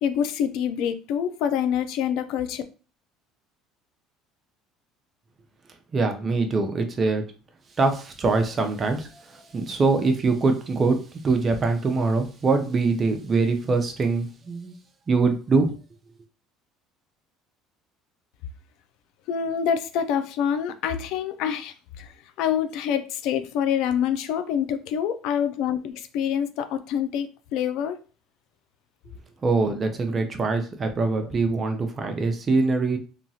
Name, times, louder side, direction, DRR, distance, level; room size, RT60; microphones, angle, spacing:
voice 1, 0.0-2.6 19.3-28.0, left 8 dB, 70° left, 0.3 m, -26 dB
voice 2, 5.9-7.2 7.8-14.8 15.1-15.7 29.4-33.0, right 3 dB, 30° right, 0.5 m, -23 dB
2.9 x 2.3 x 2.7 m
cardioid pair, 130°, 0 cm